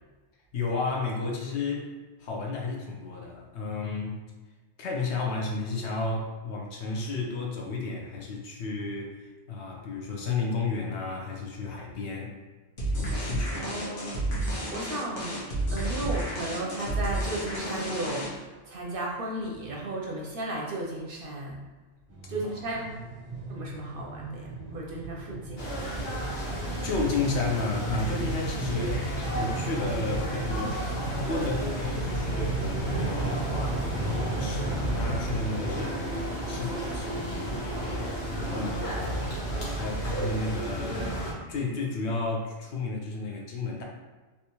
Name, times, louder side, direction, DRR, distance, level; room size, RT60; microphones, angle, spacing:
voice 1, 0.5-1.9 2.2-4.2 4.8-12.4 12.9-13.7 26.3-36.0 36.5-37.7 38.3-39.0 39.5-41.2 41.5-43.8, left 3 dB, 70° left, 0 dB, 0.9 m, -32 dB
sound 1, 12.8-18.5, right 1 dB, 85° left, 1.4 m, -31 dB
voice 2, 13.5-14.3 14.7-21.7 22.3-22.9 23.5-25.6 38.5-39.6, right 2 dB, 60° right, -2 dB, 0.6 m, -35 dB
sound 2, 22.1-38.0, right 2 dB, 15° right, 0.5 m, -35 dB
sound 3, 25.6-41.3, right 1 dB, 45° left, 0.9 m, -33 dB
3.4 x 2.8 x 2.8 m, 1.3 s
omnidirectional pair, 1.2 m